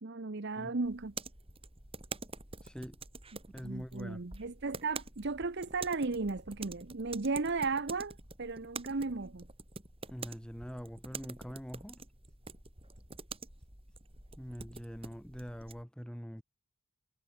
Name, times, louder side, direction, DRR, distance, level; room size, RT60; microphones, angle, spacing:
voice 1, 0.0-1.1 3.6-9.5, right 3 dB, 50° right, 0.8 m, -35 dB
sound 1, 0.8-15.8, right 4 dB, 25° right, 5.9 m, -47 dB
voice 2, 2.6-3.0 3.5-4.2 10.1-12.0 14.4-16.4, equal, 5° left, 6.3 m, -44 dB
head